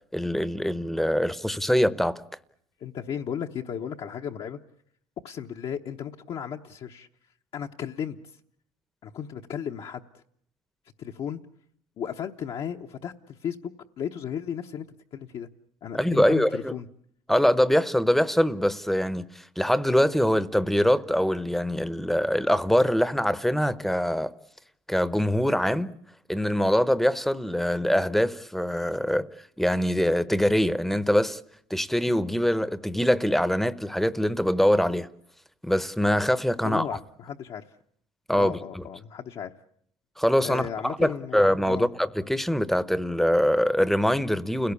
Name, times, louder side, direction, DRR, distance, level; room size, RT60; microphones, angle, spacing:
voice 1, 0.1-2.2 15.9-16.7 17.3-24.3 24.9-25.9 26.3-29.3 29.6-31.4 31.7-35.1 35.6-36.8 38.3-38.8 40.2-44.7, equal, ahead, 0.9 m, -23 dB
voice 2, 2.8-4.6 5.2-7.1 7.5-8.2 9.0-10.0 11.0-11.4 12.0-13.7 14.0-15.5 15.8-16.9 36.6-37.7 38.3-39.5 40.4-41.9, left 8 dB, 50° left, 1.0 m, -35 dB
29.0 x 17.0 x 8.4 m
cardioid pair, 110°, 11 cm